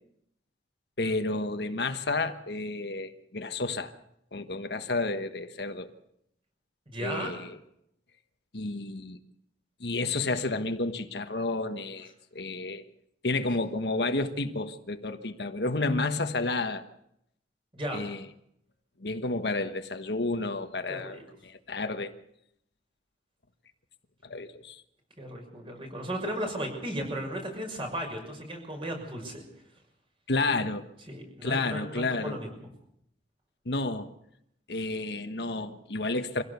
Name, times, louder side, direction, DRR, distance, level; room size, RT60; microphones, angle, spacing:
voice 1, 1.0-3.9 4.3-5.9 7.0-7.6 8.5-9.2 9.8-12.8 13.2-16.8 17.9-18.2 19.0-22.1 24.2-24.8 30.3-30.9 31.4-32.4 33.6-34.1 34.7-36.4, left 3 dB, 70° left, 1.3 m, -31 dB
voice 2, 6.9-7.3 17.7-18.0 20.9-21.2 25.2-29.4 31.1-32.7, right 1 dB, 30° right, 6.2 m, -35 dB
25.0 x 16.5 x 6.9 m
head